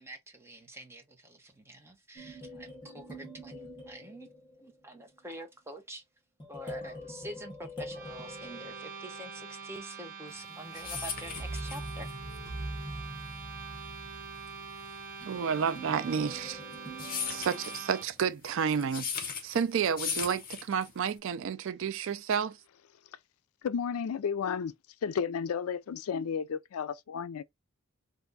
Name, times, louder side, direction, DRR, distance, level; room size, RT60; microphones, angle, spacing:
voice 1, 0.0-4.3 4.6-6.0 6.5-12.1, right 1 dB, 10° right, 0.8 m, -46 dB
sound 1, 2.2-4.8 6.4-9.4 10.8-18.1, equal, 20° left, 1.4 m, -44 dB
sound 2, 7.9-18.1, right 5 dB, 40° right, 0.8 m, -44 dB
sound 3, 10.4-21.2, left 6 dB, 40° left, 0.9 m, -39 dB
voice 2, 15.3-16.6 17.3-22.6, right 7 dB, 60° right, 0.4 m, -31 dB
voice 3, 23.6-24.7 25.0-27.4, left 6 dB, 75° left, 0.4 m, -32 dB
3.4 x 2.5 x 3.9 m
head